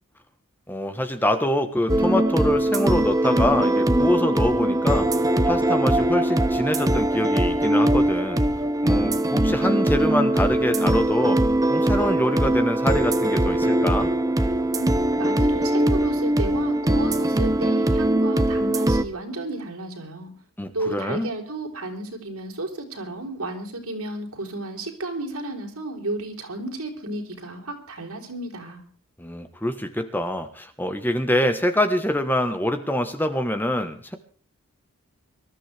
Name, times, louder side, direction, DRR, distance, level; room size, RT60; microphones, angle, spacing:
voice 1, 0.7-5.1 5.4-8.4 8.8-11.4 11.7-14.1 20.6-21.3 29.2-34.2, left 1 dB, 10° left, 8 dB, 1.2 m, -25 dB
sound 1, 1.9-19.0, right 1 dB, 15° right, 0.8 m, -21 dB
voice 2, 14.7-20.3 20.7-28.8, right 2 dB, 85° right, 2 dB, 4.3 m, -32 dB
24.5 x 13.0 x 3.5 m, 0.42 s
head